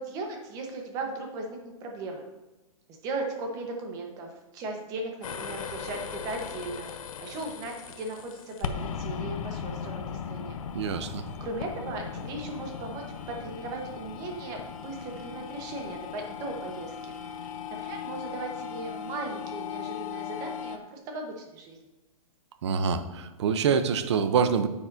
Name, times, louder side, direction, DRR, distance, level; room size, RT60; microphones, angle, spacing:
voice 1, 0.0-2.2 2.9-10.6 11.4-17.1 17.7-21.8, right 2 dB, 20° right, 2 dB, 1.0 m, -37 dB
sound 1, 5.2-20.8, left 7 dB, 65° left, 0.8 m, -38 dB
voice 2, 10.7-11.3 22.6-24.7, right 6 dB, 50° right, 11 dB, 0.7 m, -25 dB
9.9 x 7.1 x 2.7 m, 1.1 s
hypercardioid pair, 170°, 18 cm